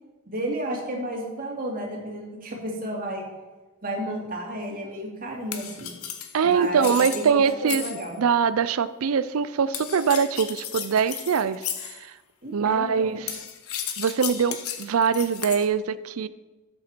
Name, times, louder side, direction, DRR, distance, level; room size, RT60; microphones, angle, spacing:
voice 1, 0.3-3.2 3.8-5.9 6.4-8.1 12.4-13.1, right 1 dB, 40° right, -1 dB, 2.5 m, -32 dB
sound 1, 5.5-8.2 9.7-12.0 13.3-15.7, left 9 dB, 85° left, 1.2 m, -34 dB
voice 2, 6.3-12.1 12.5-13.4 14.0-16.3, right 6 dB, 75° right, 15 dB, 0.4 m, -23 dB
13.0 x 7.9 x 4.5 m, 1.2 s
head